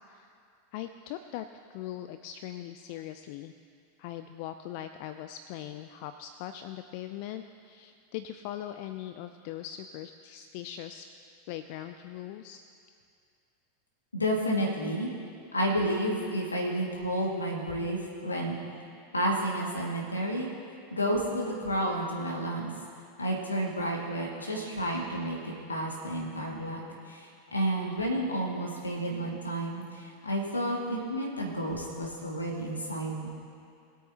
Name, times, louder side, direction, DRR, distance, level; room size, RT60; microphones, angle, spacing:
voice 1, 0.7-3.5 4.0-11.1 11.5-12.6, left 12 dB, 50° left, 9 dB, 0.4 m, -40 dB
voice 2, 14.1-15.1 15.5-18.6 19.1-20.5 20.9-22.7 23.2-26.8 27.1-33.3, right 1 dB, 85° left, -1 dB, 2.0 m, -31 dB
21.0 x 8.4 x 2.9 m, 2.4 s
figure-of-eight pair, 85°, 0 cm